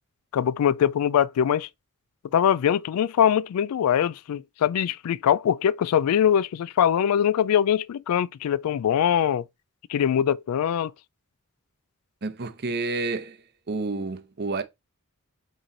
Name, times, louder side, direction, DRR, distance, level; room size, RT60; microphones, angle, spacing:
voice 1, 0.3-1.7 2.3-9.5 9.9-10.9, left 9 dB, 80° left, 0.3 m, -22 dB
voice 2, 12.2-13.4 13.7-14.6, right 3 dB, 50° right, 0.7 m, -29 dB
8.1 x 3.1 x 3.8 m
head